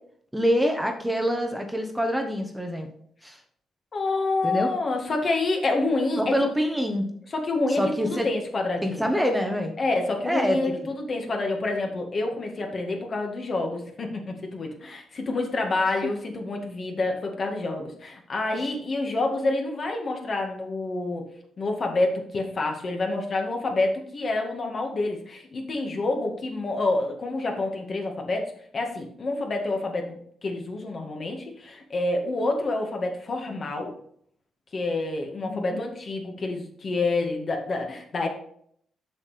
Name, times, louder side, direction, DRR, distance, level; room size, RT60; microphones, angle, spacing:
voice 1, 0.3-2.9 3.2-3.4 4.4-4.7 6.2-7.1 7.7-8.3 8.8-9.7 10.2-10.7 18.5-18.7 35.4-35.8, equal, 5° right, 4 dB, 1.2 m, -26 dB
voice 2, 3.9-6.4 7.3-9.1 9.8-21.3 21.6-28.5 28.7-33.9 34.7-38.3, left 2 dB, 45° left, 2 dB, 2.0 m, -28 dB
7.5 x 6.3 x 5.0 m, 0.65 s
cardioid pair, 95°, 0 cm